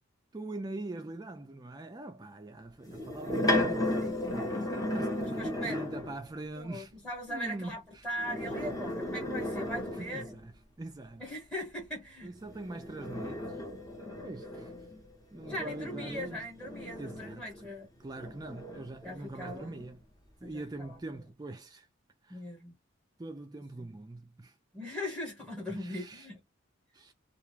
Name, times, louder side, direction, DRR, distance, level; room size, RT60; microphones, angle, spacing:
voice 1, 0.3-6.9 7.3-8.1 9.9-10.5 10.8-11.2 12.2-13.6 14.2-14.7 15.3-16.4 17.0-17.5 18.0-20.0 20.4-21.9 22.2-22.4 23.2-24.6 25.7-26.3 26.9-27.1, right 2 dB, 20° right, 0.3 m, -43 dB
sound 1, 2.9-6.2 8.1-10.5 12.4-17.6 18.2-19.9, left 1 dB, 20° left, 0.7 m, -35 dB
voice 2, 5.2-5.8 6.5-10.3 11.2-12.3 15.4-17.9 19.0-19.7 20.4-21.2 22.3-22.8 23.8-24.0 24.7-26.4, equal, ahead, 1.0 m, -40 dB
2.3 x 2.2 x 3.1 m
head